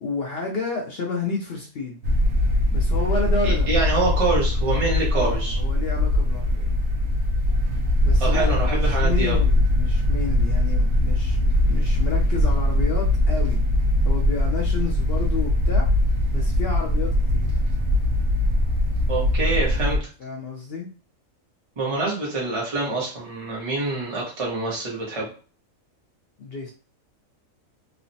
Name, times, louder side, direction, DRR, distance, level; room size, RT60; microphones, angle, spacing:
voice 1, 0.0-2.0 2.7-3.7 5.1-6.7 8.0-13.6 14.0-15.9 16.3-17.5 20.2-20.9 26.4-26.7, left 3 dB, 60° left, 0 dB, 0.6 m, -31 dB
sound 1, 2.0-20.0, left 1 dB, 75° right, 0.9 m, -21 dB
voice 2, 3.4-5.5 8.2-9.4 19.1-20.0 21.8-25.3, right 3 dB, 30° right, -5 dB, 0.7 m, -26 dB
3.1 x 2.0 x 2.6 m, 0.37 s
omnidirectional pair, 1.5 m